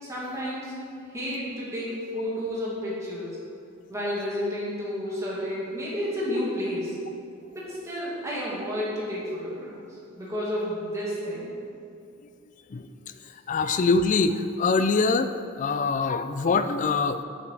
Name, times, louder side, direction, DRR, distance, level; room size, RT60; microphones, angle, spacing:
voice 1, 0.0-0.7 1.1-3.4 3.9-7.0 7.5-9.8 10.2-11.5, equal, 15° right, -7 dB, 2.2 m, -31 dB
voice 2, 13.5-15.3 15.6-17.2, left 4 dB, 35° left, 10 dB, 0.3 m, -23 dB
8.7 x 7.6 x 4.7 m, 2.5 s
head